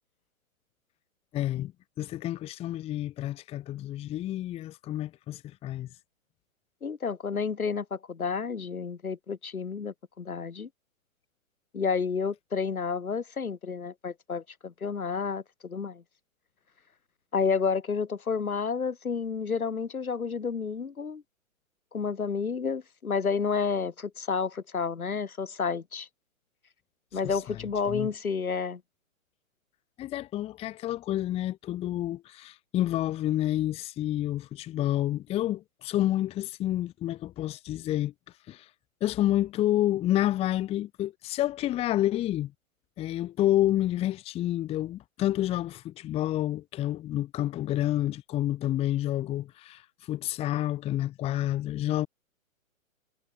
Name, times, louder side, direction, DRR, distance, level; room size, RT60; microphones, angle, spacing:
voice 1, 1.3-1.7 2.0-5.9 27.1-27.6 27.9-28.1 30.0-38.1 38.5-38.7 39.0-42.5 43.0-49.8 50.1-52.1, left 13 dB, 15° left, 1.1 m, -29 dB
voice 2, 6.8-10.7 11.7-16.0 17.3-21.2 21.9-26.1 27.1-28.8, left 5 dB, 85° left, 6.1 m, -30 dB
hypercardioid pair, 140°, 42 cm